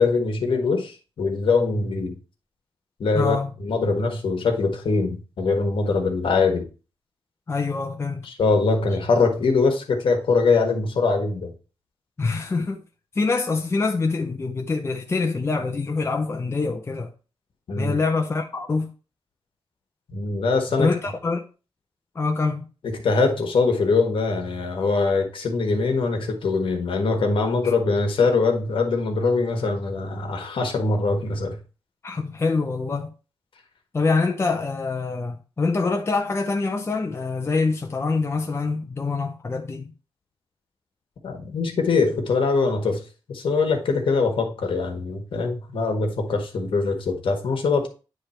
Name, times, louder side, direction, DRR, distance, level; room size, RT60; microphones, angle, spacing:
voice 1, 0.0-2.1 3.0-6.6 8.2-11.5 17.7-18.0 20.1-20.9 23.0-31.6 41.2-43.0 43.3-47.9, left 4 dB, 70° left, 1.6 m, -22 dB
voice 2, 3.1-3.5 7.5-8.2 12.2-12.8 13.1-17.1 17.8-18.9 20.8-21.4 22.2-22.7 27.6-27.7 32.0-33.1 33.9-39.9, left 4 dB, 30° left, 0.7 m, -25 dB
9.4 x 3.4 x 4.4 m
wide cardioid pair, 110°, 9 cm